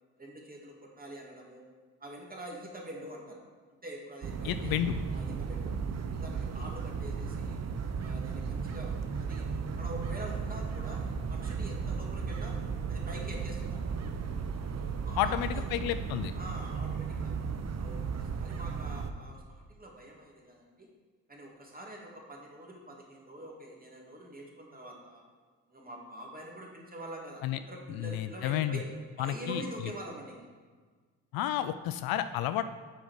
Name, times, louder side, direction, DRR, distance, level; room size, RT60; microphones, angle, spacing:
voice 1, 0.2-1.6 2.0-3.4 3.8-4.7 5.1-5.7 6.1-7.6 8.0-9.5 9.8-12.6 12.9-14.0 15.0-15.7 16.3-17.3 17.7-20.9 21.3-25.2 25.7-28.9 29.2-30.5, right 1 dB, 20° right, -2 dB, 2.7 m, -45 dB
sound 1, 4.2-19.1, right 5 dB, 40° right, 0.8 m, -35 dB
voice 2, 4.4-4.9 15.2-16.3 27.4-27.6 27.9-28.8 29.2-29.6 31.3-32.6, left 12 dB, 65° left, 12 dB, 0.5 m, -31 dB
7.5 x 5.0 x 6.6 m, 1.5 s
hypercardioid pair, 45°, 38 cm